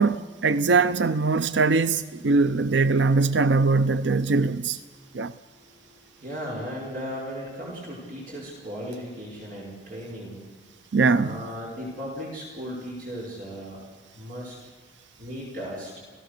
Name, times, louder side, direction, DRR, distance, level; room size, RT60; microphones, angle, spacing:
voice 1, 0.0-4.8 5.1-5.3 10.9-11.4, right 4 dB, 75° right, 0.6 m, -21 dB
voice 2, 4.9-5.3 5.6-10.4 11.2-13.8 14.1-14.6 15.2-16.0, equal, 50° right, 5.2 m, -36 dB
28.0 x 17.0 x 6.7 m
head